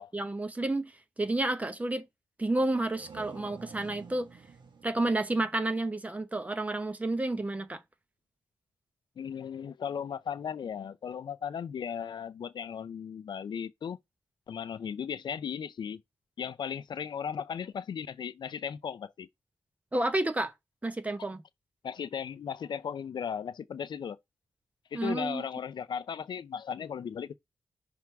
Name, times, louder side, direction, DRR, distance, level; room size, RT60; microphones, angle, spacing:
voice 1, 0.1-2.1 2.4-4.3 4.8-7.8 19.9-20.5 20.8-21.4 24.9-25.4, right 2 dB, 20° right, 0.9 m, -30 dB
sound 1, 2.6-6.2, right 5 dB, 65° right, 1.5 m, -50 dB
voice 2, 9.2-14.0 14.5-16.0 16.4-19.3 21.8-24.2 24.9-27.4, left 7 dB, 65° left, 0.4 m, -36 dB
6.0 x 3.5 x 4.5 m
wide cardioid pair, 145°, 8 cm